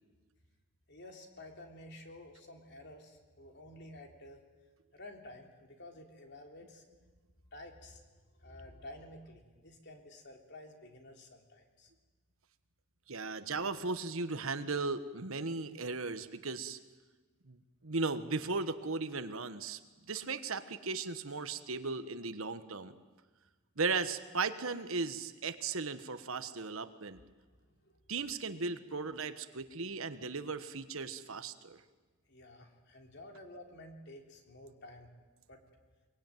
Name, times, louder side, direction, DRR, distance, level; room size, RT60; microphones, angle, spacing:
voice 1, 0.9-4.4 4.9-6.8 7.5-8.0 8.4-11.9 27.6-28.0 32.3-35.1 35.5-35.6, left 1 dB, 50° left, 3 dB, 3.4 m, -51 dB
voice 2, 13.1-16.8 17.5-17.6 17.8-19.8 20.1-22.9 23.8-27.2 28.1-31.8, right 4 dB, 70° right, 11 dB, 1.3 m, -36 dB
23.0 x 22.5 x 9.2 m, 1.3 s
head